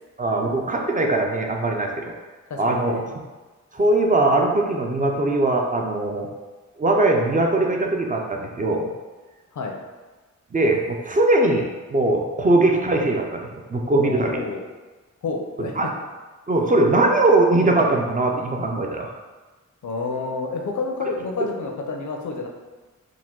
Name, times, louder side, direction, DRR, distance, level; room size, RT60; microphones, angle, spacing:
voice 1, 0.2-2.1 2.6-3.0 3.7-6.3 6.8-8.9 10.5-14.4 15.6-15.9 16.5-19.1, right 2 dB, 30° right, 1 dB, 0.4 m, -21 dB
voice 2, 2.5-3.1 9.5-9.8 13.9-14.6 15.2-15.9 19.8-22.5, left 4 dB, 75° left, 2 dB, 0.6 m, -29 dB
4.8 x 2.1 x 3.7 m, 1.3 s
wide cardioid pair, 150°, 30 cm